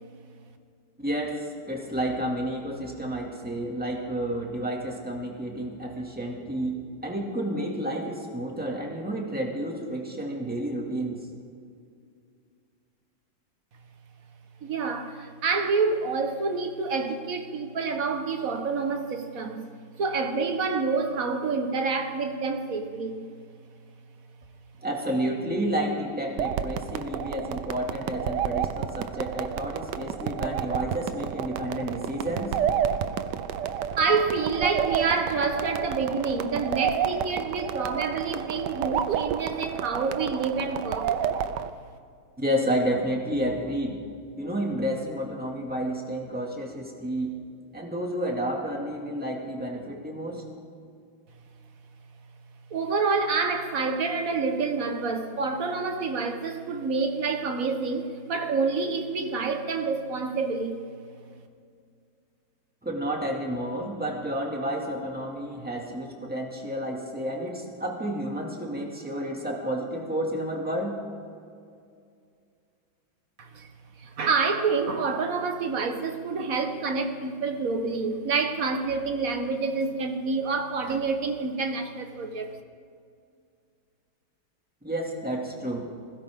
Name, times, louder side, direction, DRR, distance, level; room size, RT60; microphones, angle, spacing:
voice 1, 1.0-11.3 24.8-32.5 42.4-44.0 44.4-47.4 47.7-50.5 62.8-71.0 84.8-85.9, right 1 dB, 5° right, 2.1 m, -30 dB
voice 2, 14.6-19.6 20.0-23.3 32.9-33.0 34.0-41.1 52.7-60.8 73.4-73.7 74.0-82.5, right 4 dB, 45° right, 1.5 m, -28 dB
sound 1, 26.4-41.7, right 9 dB, 65° right, 1.1 m, -30 dB
20.5 x 16.5 x 3.7 m
omnidirectional pair, 2.3 m